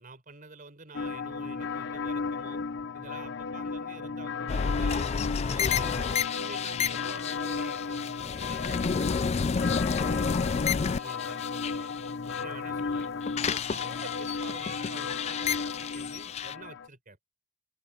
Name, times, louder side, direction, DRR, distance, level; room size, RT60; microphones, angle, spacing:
voice 1, 0.0-2.6 2.9-5.1 5.5-11.9 12.2-13.1 13.4-17.2, right 3 dB, 40° right, 4.6 m, -48 dB
sound 1, 0.9-16.9, left 5 dB, 55° left, 0.7 m, -35 dB
sound 2, 4.5-12.4 12.8-16.5, left 6 dB, 30° left, 0.3 m, -30 dB
open air
head